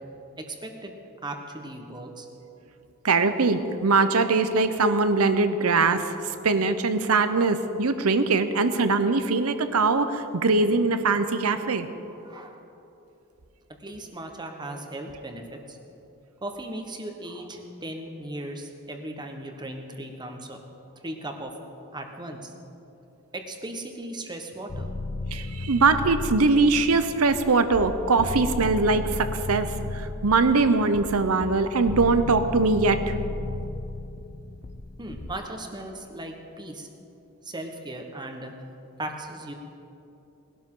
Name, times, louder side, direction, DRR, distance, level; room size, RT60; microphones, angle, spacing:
voice 1, 0.4-0.9 1.2-2.3 12.1-12.6 13.8-15.8 16.4-20.6 21.0-21.5 21.9-22.5 23.3-24.9 35.0-36.9 37.4-38.5 39.0-39.5, right 1 dB, 20° right, 3 dB, 1.2 m, -37 dB
voice 2, 3.0-6.0 6.4-11.9 25.3-29.7 30.2-33.0, right 3 dB, 80° right, 10 dB, 0.8 m, -22 dB
sound 1, 24.7-35.3, left 2 dB, 35° left, 0.6 m, -34 dB
20.0 x 12.5 x 3.8 m, 2.8 s
head